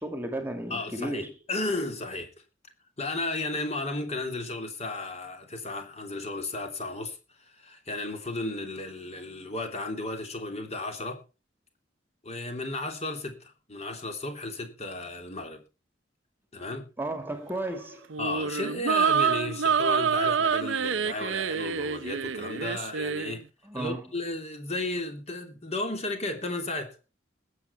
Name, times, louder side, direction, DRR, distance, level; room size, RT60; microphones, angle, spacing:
voice 1, 0.0-1.3 17.0-18.1 23.6-24.1, right 1 dB, 10° right, 2.0 m, -34 dB
voice 2, 0.7-2.3 3.0-11.2 12.2-15.6 16.5-16.9 18.2-23.4 23.7-27.0, left 2 dB, 35° left, 3.0 m, -34 dB
sound 1, 18.1-23.4, right 6 dB, 80° right, 0.6 m, -27 dB
20.5 x 7.8 x 4.6 m
head